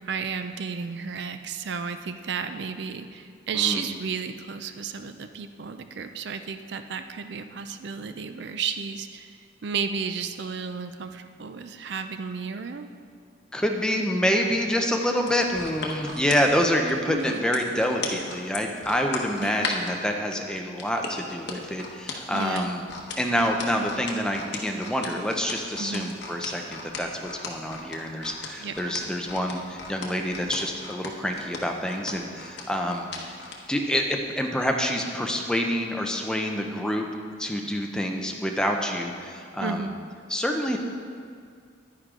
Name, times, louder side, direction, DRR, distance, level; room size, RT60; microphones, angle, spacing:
voice 1, 0.0-12.9 17.0-17.5 19.4-19.7 22.3-22.7 25.8-26.1 28.6-28.7 39.6-40.0, right 6 dB, 65° right, 9 dB, 0.4 m, -33 dB
voice 2, 13.5-22.8 23.2-33.3 33.7-37.1 37.4-39.9 40.3-40.8, equal, 5° left, 2 dB, 0.6 m, -27 dB
sound 1, 15.2-20.0 20.8-33.6 34.0-34.2, left 4 dB, 60° left, 1.1 m, -36 dB
10.5 x 9.6 x 3.7 m, 2.2 s
head